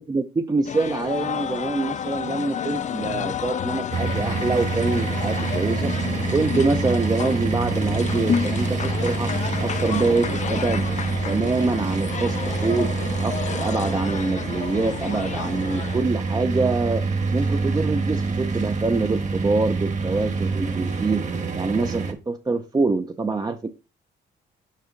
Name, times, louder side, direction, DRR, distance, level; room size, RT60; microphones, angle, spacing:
voice 1, 0.0-5.9 6.3-9.3 9.6-10.9 11.3-17.0 17.3-21.2 21.6-23.7, right 3 dB, 20° right, 6 dB, 0.5 m, -25 dB
sound 1, 0.6-16.0, left 8 dB, 35° left, 0.4 m, -30 dB
sound 2, 3.9-22.1, right 4 dB, 35° right, 1.3 m, -26 dB
6.6 x 4.9 x 3.6 m, 0.30 s
cardioid pair, 90°, 20 cm